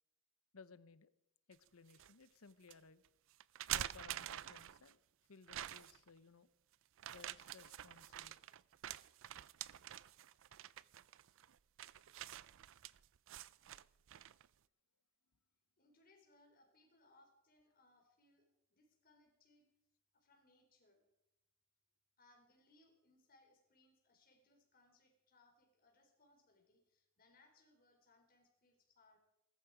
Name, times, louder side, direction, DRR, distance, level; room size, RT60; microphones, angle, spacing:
voice 1, 0.5-1.1 1.5-3.0 3.7-5.0 5.3-6.5 7.1-8.4, left 5 dB, 80° left, 15 dB, 0.9 m, -60 dB
sound 1, 1.5-2.1 2.7-2.8 3.4-4.9 5.5-6.1 7.0-14.5, right 12 dB, 65° right, 0.5 m, -47 dB
voice 2, 15.8-19.7 20.1-21.0 22.2-29.2, left 2 dB, 45° left, 3 dB, 4.3 m, -71 dB
20.5 x 14.0 x 5.0 m, 0.85 s
head